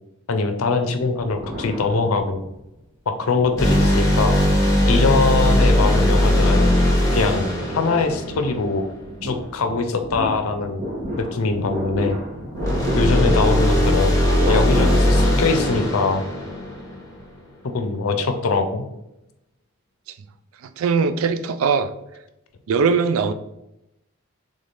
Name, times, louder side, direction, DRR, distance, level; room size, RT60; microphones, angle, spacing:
voice 1, 0.3-2.4 3.1-4.4 4.9-6.7 7.1-7.5 7.7-8.8 9.2-10.8 11.2-12.2 13.0-14.1 14.5-16.2 17.7-18.9, left 4 dB, 80° left, 0.5 m, -22 dB
sound 1, 1.2-2.6 3.1-15.2, equal, 35° right, 1.1 m, -32 dB
sound 2, 3.6-9.0 12.5-17.3, left 1 dB, 15° left, 1.1 m, -19 dB
voice 2, 20.8-21.9 22.7-23.3, right 5 dB, 75° right, 0.3 m, -20 dB
3.6 x 3.3 x 4.0 m
head